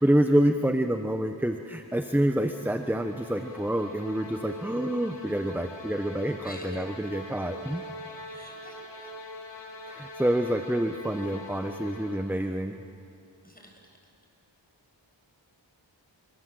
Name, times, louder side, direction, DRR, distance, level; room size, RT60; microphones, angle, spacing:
voice 1, 0.0-7.9 9.9-12.8, right 1 dB, 5° right, 6 dB, 1.1 m, -27 dB
sound 1, 2.1-12.6, equal, 70° left, 1.9 m, -43 dB
voice 2, 6.4-6.9 8.3-9.1 13.4-14.0, left 1 dB, 20° left, 1 dB, 6.9 m, -48 dB
26.5 x 25.5 x 8.0 m, 2.7 s
wide cardioid pair, 50°, 45 cm